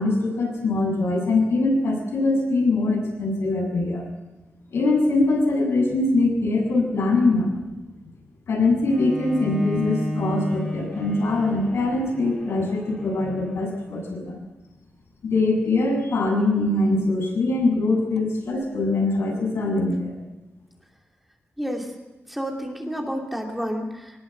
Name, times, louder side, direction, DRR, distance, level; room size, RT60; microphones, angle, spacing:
voice 1, 0.0-4.1 4.7-7.5 8.5-14.3 15.2-20.2, left 2 dB, 80° left, 1 dB, 7.9 m, -22 dB
Bowed string instrument, 8.9-14.1, left 1 dB, 15° left, 4.4 m, -33 dB
voice 2, 21.6-21.9 22.3-24.2, equal, 5° right, 1 dB, 2.8 m, -30 dB
22.5 x 19.5 x 8.1 m, 1.1 s
wide cardioid pair, 150°, 4 cm